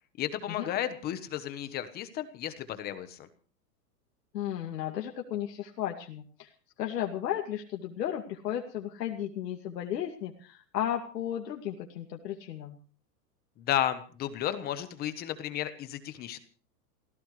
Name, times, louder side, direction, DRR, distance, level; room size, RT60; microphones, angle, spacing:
voice 1, 0.2-3.3 13.6-16.4, left 11 dB, 20° left, 11 dB, 1.1 m, -33 dB
voice 2, 4.3-6.5 6.8-12.8, left 11 dB, 80° left, 2 dB, 2.5 m, -34 dB
28.0 x 16.0 x 3.2 m, 0.39 s
supercardioid pair, 160°, 48 cm